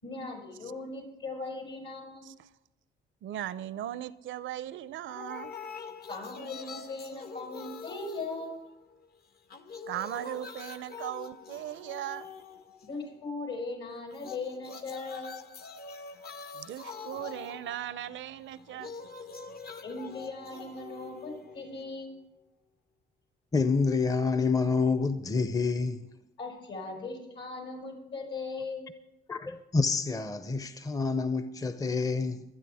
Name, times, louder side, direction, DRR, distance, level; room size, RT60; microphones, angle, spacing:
voice 1, 0.0-2.3 6.1-8.6 12.9-15.4 19.8-22.2 26.4-28.9, left 3 dB, 70° left, 5.9 m, -39 dB
voice 2, 3.2-5.5 9.8-12.3 16.5-18.9, right 12 dB, 75° right, 0.5 m, -38 dB
sound 1, 5.1-9.1 9.4-13.1 14.1-22.1, left 5 dB, 50° left, 0.9 m, -45 dB
voice 3, 23.5-26.0 29.3-32.4, left 4 dB, 15° left, 0.6 m, -28 dB
24.5 x 9.1 x 3.5 m
cardioid pair, 90°, 20 cm